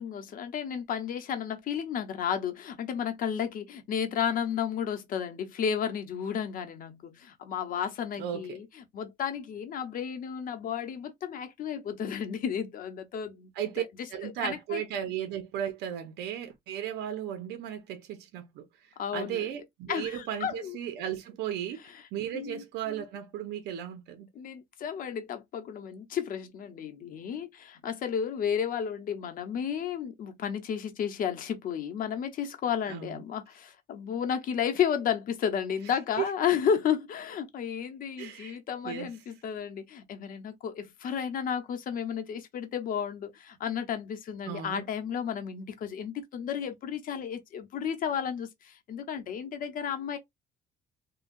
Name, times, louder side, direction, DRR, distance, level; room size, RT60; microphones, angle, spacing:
voice 1, 0.0-13.5 13.8-13.9 14.2-14.8 19.0-19.5 19.9-20.8 21.8-22.1 22.3-22.6 24.3-50.2, left 8 dB, 55° left, 0.8 m, -32 dB
voice 2, 8.2-8.6 13.6-13.8 14.1-18.6 19.1-21.8 22.1-24.3 32.9-33.2 36.2-36.3 38.2-38.6 38.8-39.1 44.5-44.8, right 10 dB, 80° right, 0.7 m, -35 dB
3.7 x 2.3 x 2.5 m
cardioid pair, 110°, 17 cm